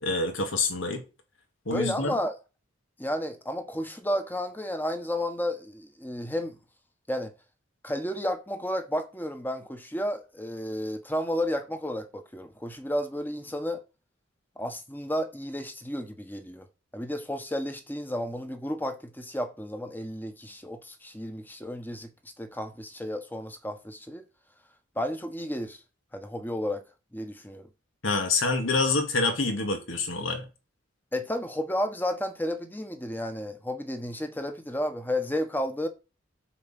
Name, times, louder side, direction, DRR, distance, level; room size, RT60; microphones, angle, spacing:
voice 1, 0.0-1.0 1.7-2.1 28.0-30.4, left 3 dB, 80° left, 2.3 m, -26 dB
voice 2, 1.7-2.4 3.0-6.6 7.1-7.3 7.8-13.8 14.6-16.7 16.9-22.1 22.4-24.2 25.0-25.8 26.1-26.8 27.1-27.7 31.1-35.9, left 1 dB, 10° left, 1.2 m, -32 dB
8.5 x 4.9 x 7.6 m
head